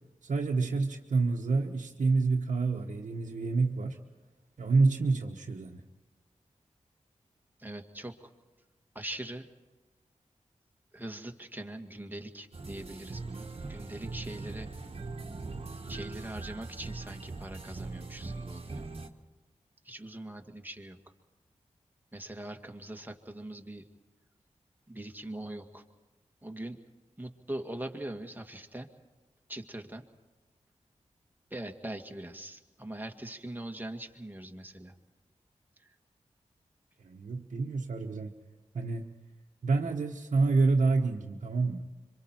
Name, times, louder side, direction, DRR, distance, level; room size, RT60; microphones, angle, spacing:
voice 1, 0.2-4.0 4.6-5.8 37.0-38.3 38.7-39.1 39.6-41.9, right 3 dB, 75° right, -1 dB, 1.1 m, -28 dB
voice 2, 7.6-8.3 9.0-9.5 10.9-14.7 15.9-18.8 19.9-21.0 22.1-23.8 24.9-25.8 26.4-26.8 27.2-28.9 29.5-30.0 31.5-34.9, right 1 dB, 15° right, 4 dB, 2.1 m, -42 dB
sound 1, 12.5-19.1, right 3 dB, 50° right, 1.6 m, -41 dB
26.0 x 24.5 x 4.5 m, 1.2 s
cardioid pair, 40°, 13 cm